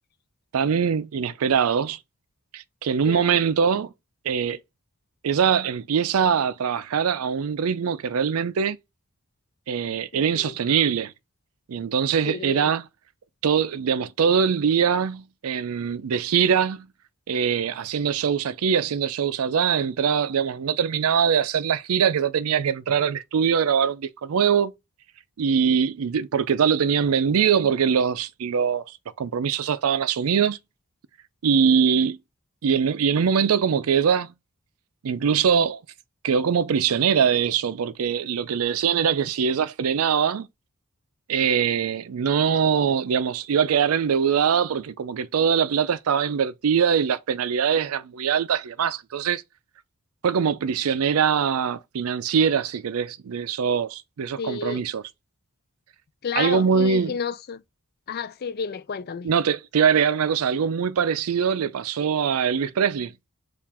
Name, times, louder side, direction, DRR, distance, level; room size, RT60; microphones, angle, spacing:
voice 1, 0.5-2.0 2.5-3.9 4.2-4.6 5.2-8.8 9.7-11.1 11.7-12.9 13.4-16.9 17.3-24.7 25.4-28.8 29.2-30.6 31.4-32.2 32.6-34.3 35.0-35.8 36.2-40.5 41.3-49.4 50.2-55.0 56.4-57.2 59.2-63.1, right 7 dB, 80° right, 0.4 m, -22 dB
voice 2, 10.1-10.5 12.3-12.7 54.4-54.8 56.2-57.6 58.1-59.3, left 6 dB, 45° left, 0.4 m, -31 dB
4.6 x 2.5 x 3.5 m
head